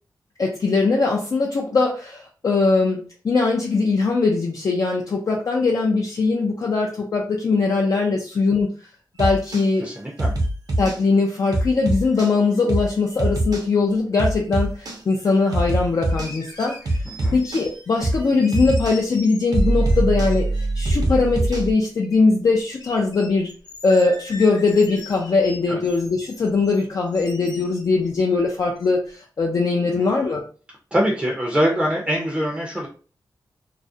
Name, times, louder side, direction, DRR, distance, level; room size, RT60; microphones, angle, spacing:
voice 1, 0.4-8.7 9.2-9.9 10.8-17.0 17.3-23.5 23.8-30.4, left 3 dB, 50° left, -1 dB, 0.4 m, -21 dB
sound 1, 9.2-9.7 10.2-11.0 11.5-12.3 12.7-12.9 13.2-13.7 14.2-15.0 15.5-16.3 16.9-17.7 18.0-18.2 18.5-19.0 19.5-21.7, right 1 dB, 60° right, 0.6 m, -23 dB
voice 2, 9.8-10.3 17.1-17.4 25.7-25.8 29.9-30.1 30.9-32.9, equal, 15° right, -2 dB, 0.5 m, -23 dB
sound 2, 16.1-18.0 18.3-20.9 21.5-22.2 22.5-22.6 22.8-28.4 28.8-28.9, left 2 dB, 65° left, 0.8 m, -42 dB
2.3 x 2.0 x 2.6 m, 0.38 s
wide cardioid pair, 110°, 8 cm